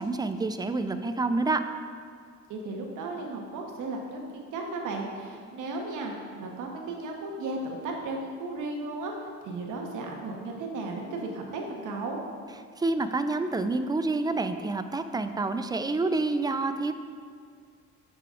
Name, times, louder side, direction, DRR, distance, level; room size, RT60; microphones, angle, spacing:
voice 1, 0.0-1.6 12.8-16.9, right 3 dB, 15° right, 9 dB, 0.3 m, -28 dB
voice 2, 2.5-12.2, right 2 dB, 85° right, 1 dB, 1.1 m, -35 dB
9.1 x 6.7 x 2.5 m, 2.1 s
cardioid pair, 90°, 30 cm